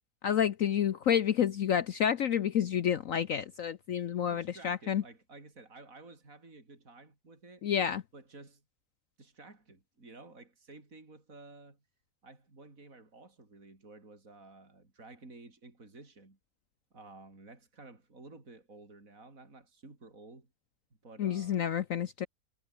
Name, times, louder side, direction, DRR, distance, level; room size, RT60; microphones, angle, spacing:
voice 1, 0.2-5.0 7.6-8.0 21.2-22.3, left 9 dB, 60° left, 1.0 m, -29 dB
voice 2, 4.2-7.6 8.1-8.6 9.2-11.8 12.2-16.4 16.9-20.5 21.0-21.6, right 3 dB, 50° right, 4.9 m, -53 dB
omnidirectional pair, 1.8 m